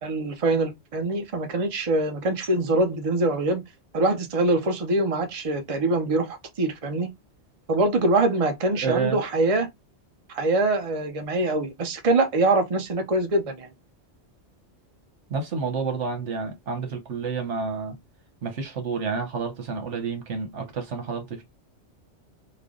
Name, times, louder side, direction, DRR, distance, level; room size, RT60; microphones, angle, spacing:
voice 1, 0.0-3.6 3.9-7.1 7.7-9.7 10.3-13.7, right 2 dB, 35° right, 0.7 m, -24 dB
voice 2, 8.7-9.2 15.3-18.0 18.4-21.4, right 5 dB, 80° right, 1.3 m, -29 dB
3.3 x 2.2 x 3.7 m
omnidirectional pair, 1.2 m